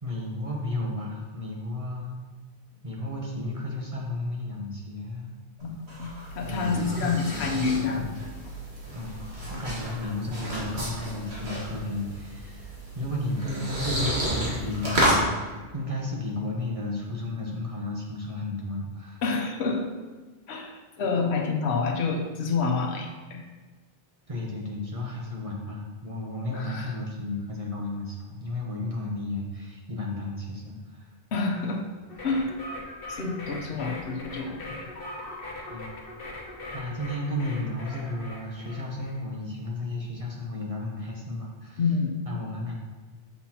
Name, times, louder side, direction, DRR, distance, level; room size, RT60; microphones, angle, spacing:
voice 1, 0.0-2.2 2.8-5.4 6.5-8.1 8.9-9.2 9.5-15.3 15.7-19.2 24.3-31.1 35.7-35.9 36.7-41.8 42.3-42.7, left 2 dB, 35° right, -2 dB, 1.1 m, -33 dB
voice 2, 5.6-6.1 6.3-8.1 19.2-19.8 20.5-20.7 21.0-23.4 26.5-27.0 31.3-31.9 32.2-32.5 33.1-34.9 41.8-42.2, left 4 dB, 80° left, 3 dB, 1.1 m, -28 dB
sound 1, 5.6-15.2, right 1 dB, 75° right, 1.9 m, -31 dB
sound 2, 32.1-39.2, left 2 dB, 60° left, 1.3 m, -40 dB
6.8 x 5.9 x 2.9 m, 1.3 s
omnidirectional pair, 1.1 m